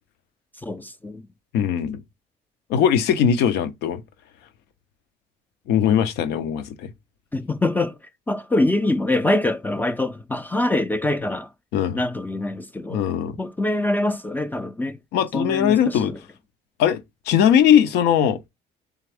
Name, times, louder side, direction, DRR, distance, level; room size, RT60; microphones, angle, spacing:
voice 1, 0.6-1.3 7.3-8.0 8.3-11.5 12.0-13.0 13.4-15.0 15.3-16.2, left 2 dB, 10° left, 0.4 m, -24 dB
voice 2, 1.5-2.0 2.7-4.0 5.7-6.9 11.7-12.0 12.9-13.4 15.1-16.1 16.8-18.4, left 9 dB, 85° left, 0.6 m, -20 dB
3.6 x 3.4 x 3.4 m
cardioid pair, 110°, 17 cm